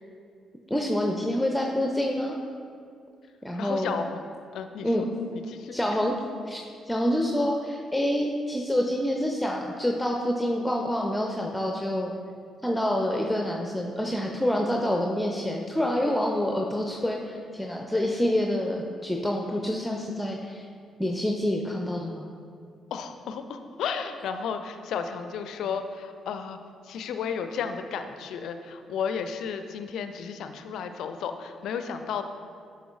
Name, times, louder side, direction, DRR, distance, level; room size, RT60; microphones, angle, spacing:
voice 1, 0.7-2.4 3.4-4.0 4.8-5.0 5.7-6.1 6.4-6.6 6.9-12.1 12.6-20.6 21.0-22.3, left 1 dB, 5° left, 1 dB, 0.6 m, -27 dB
voice 2, 3.5-4.2 4.5-6.0 22.9-26.6 26.8-32.2, left 6 dB, 60° left, 8 dB, 0.4 m, -33 dB
10.5 x 5.9 x 2.4 m, 2.2 s
figure-of-eight pair, 40°, 0 cm